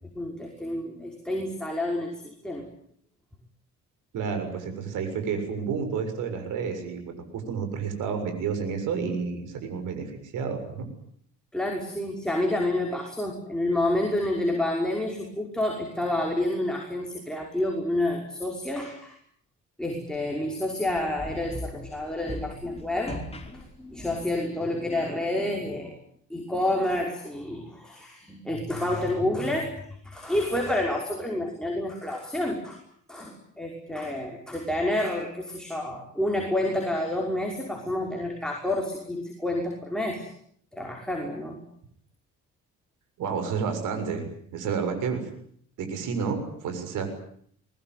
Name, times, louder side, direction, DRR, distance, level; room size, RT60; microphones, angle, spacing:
voice 1, 0.1-2.7 11.5-19.2 19.8-23.2 23.5-25.9 26.3-32.8 33.1-40.3 40.7-41.6, left 1 dB, ahead, 0 dB, 5.7 m, -29 dB
voice 2, 4.1-10.9 43.2-44.3 44.5-45.2 45.8-47.1, right 6 dB, 85° right, 6 dB, 7.0 m, -30 dB
sound 1, 20.9-24.4, left 1 dB, 20° left, 5.1 m, -39 dB
24.0 x 22.0 x 9.5 m, 0.64 s
cardioid pair, 110°, 30 cm